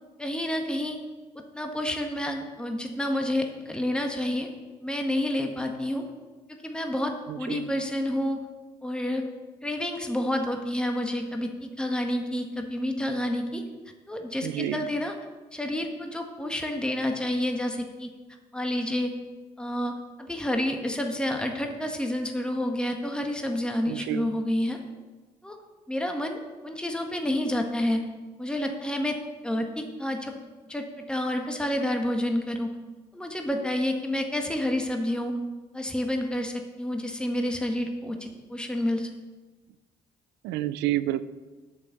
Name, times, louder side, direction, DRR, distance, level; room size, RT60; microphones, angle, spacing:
voice 1, 0.2-1.0 1.5-4.5 4.8-6.0 6.6-8.4 8.8-9.2 9.6-11.5 11.8-13.6 14.1-15.1 15.5-18.1 18.5-19.1 19.6-24.8 25.4-25.6 25.9-28.0 28.4-29.2 29.4-30.3 30.7-32.7 33.1-35.3 35.7-39.1, left 1 dB, 5° left, 3 dB, 1.5 m, -29 dB
voice 2, 7.3-7.7 14.4-14.8 23.9-24.3 40.4-41.2, right 14 dB, 75° right, 16 dB, 0.5 m, -29 dB
8.7 x 7.3 x 6.9 m, 1.3 s
hypercardioid pair, 55°, 18 cm